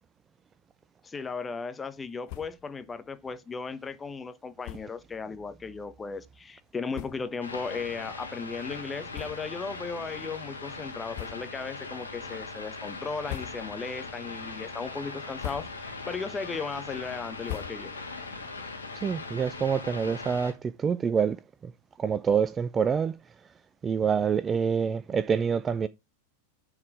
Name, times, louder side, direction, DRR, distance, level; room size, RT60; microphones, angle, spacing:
voice 1, 1.0-17.9, left 4 dB, 15° left, 0.9 m, -36 dB
sound 1, 2.2-2.7 3.1-3.2 3.4-3.6 4.6-5.0 5.8-5.9 6.6-6.7 6.9-7.4 8.0-8.1 9.1-9.7 10.1-10.3 11.1-11.7 12.1-12.6 13.0-13.9 14.3-14.7 15.2-16.0 16.4-18.2, left 15 dB, 45° left, 0.9 m, -43 dB
sound 2, 7.4-20.5, left 3 dB, 75° left, 2.3 m, -40 dB
voice 2, 18.9-21.4 21.6-21.7 22.0-23.1 23.8-25.9, right 6 dB, 20° right, 0.4 m, -26 dB
9.6 x 4.8 x 4.8 m
figure-of-eight pair, 90°, 0 cm